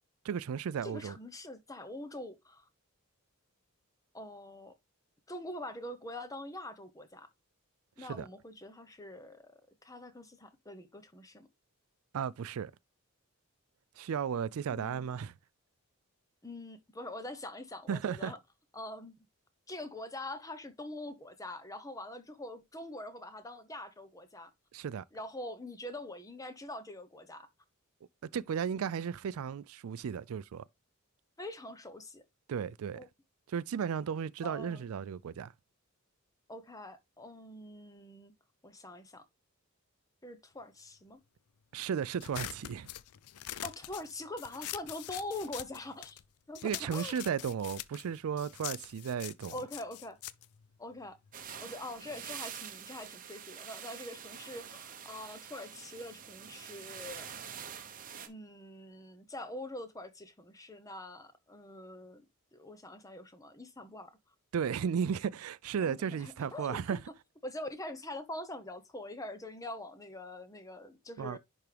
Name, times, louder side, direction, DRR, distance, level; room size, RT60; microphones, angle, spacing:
voice 1, 0.3-1.2 8.0-8.3 12.1-12.7 14.0-15.3 17.9-18.3 24.7-25.0 28.3-30.6 32.5-33.0 33.5-35.5 41.7-42.9 46.6-49.5 64.5-67.0 71.2-71.4, right 7 dB, 75° right, 0.4 m, -34 dB
voice 2, 0.8-2.7 4.1-4.7 5.3-7.3 8.0-11.5 14.7-15.1 16.4-18.4 18.7-19.2 19.7-24.5 25.1-27.5 31.4-32.2 32.9-33.1 34.4-34.9 36.5-38.3 38.6-39.2 40.2-41.2 43.6-46.2 46.5-47.2 49.5-50.2 50.8-51.2 51.6-57.3 58.2-62.2 62.5-64.2 65.8-67.0 67.4-71.4, left 1 dB, 15° left, 0.8 m, -44 dB
sound 1, 42.2-46.3 46.5-51.4, left 13 dB, 85° left, 0.5 m, -44 dB
sound 2, 51.3-58.3, right 8 dB, 40° right, 0.9 m, -46 dB
10.5 x 3.6 x 3.3 m
head